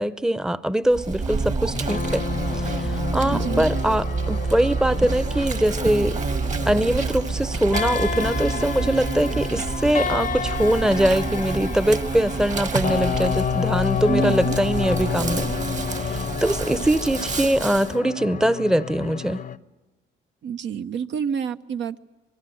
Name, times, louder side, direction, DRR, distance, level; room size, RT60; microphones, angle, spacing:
voice 1, 0.0-2.3 2.5-6.2 6.7-15.5 16.0-19.4, right 1 dB, 5° right, 0.7 m, -22 dB
Insect, 0.9-17.9, right 4 dB, 40° right, 1.4 m, -28 dB
sound 1, 1.7-19.6, left 7 dB, 40° left, 0.8 m, -30 dB
voice 2, 3.3-3.7 14.1-14.6 20.4-22.0, right 7 dB, 65° right, 0.9 m, -28 dB
24.5 x 22.5 x 7.8 m
cardioid pair, 90°, 20 cm